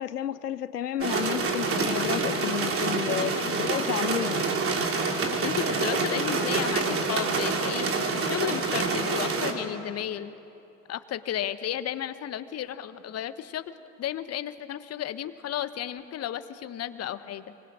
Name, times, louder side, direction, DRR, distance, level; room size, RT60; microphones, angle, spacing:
voice 1, 0.0-4.5, left 10 dB, 85° left, 15 dB, 0.7 m, -31 dB
sound 1, 1.0-9.5, right 4 dB, 30° right, 3.4 m, -27 dB
voice 2, 3.1-3.5 5.3-7.9 8.2-10.3 10.9-13.6 14.0-17.4, left 11 dB, 35° left, 12 dB, 1.3 m, -33 dB
25.0 x 24.5 x 8.9 m, 2.8 s
figure-of-eight pair, 75°, 46 cm